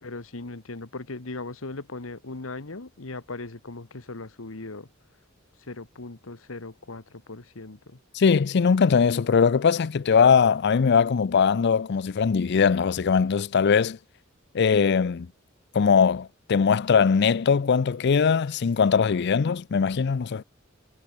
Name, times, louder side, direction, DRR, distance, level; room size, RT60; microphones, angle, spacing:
voice 1, 0.0-4.9 5.7-8.0, left 3 dB, 80° left, 1.5 m, -38 dB
voice 2, 8.1-14.0 14.5-15.3 15.7-20.4, left 6 dB, 55° left, 0.4 m, -21 dB
head